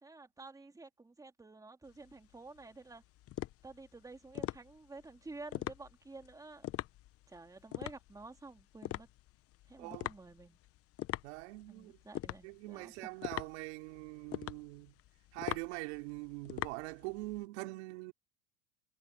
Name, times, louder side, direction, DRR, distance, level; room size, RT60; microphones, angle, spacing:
voice 1, 0.0-3.0 3.6-6.6 7.3-9.1 9.7-10.6 11.7-13.1, right 3 dB, 10° right, 2.9 m, -51 dB
sound 1, 1.9-17.4, left 15 dB, 40° left, 1.1 m, -43 dB
voice 2, 9.8-10.2 11.2-12.0 12.4-14.9 15.3-18.1, right 23 dB, 70° right, 3.5 m, -43 dB
supercardioid pair, 115°, 36 cm